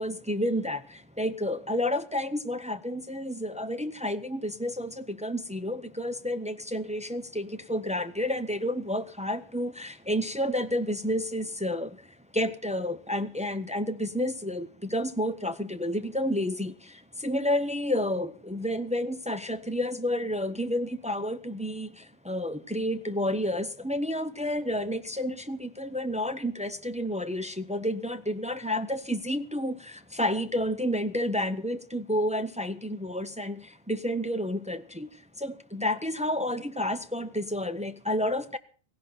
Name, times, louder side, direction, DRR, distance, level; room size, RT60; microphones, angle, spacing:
voice 1, 0.0-38.6, left 1 dB, 10° right, 0.4 m, -30 dB
16.5 x 16.5 x 4.4 m
omnidirectional pair, 1.2 m